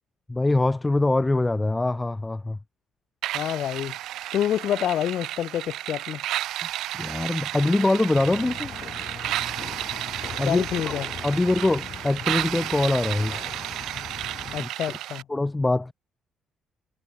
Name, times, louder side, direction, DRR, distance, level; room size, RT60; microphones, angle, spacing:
voice 1, 0.3-2.6 6.9-8.7 10.4-10.6 11.2-13.4 14.6-14.7 15.3-15.9, left 2 dB, 15° left, 1.0 m, -23 dB
sound 1, 3.2-15.2, right 14 dB, 80° right, 0.5 m, -32 dB
voice 2, 3.3-3.9 4.3-6.2 10.5-11.1 14.5-15.2, left 11 dB, 65° left, 0.4 m, -27 dB
sound 2, 8.1-14.6, left 7 dB, 50° left, 2.4 m, -40 dB
cardioid pair, 105°, 0 cm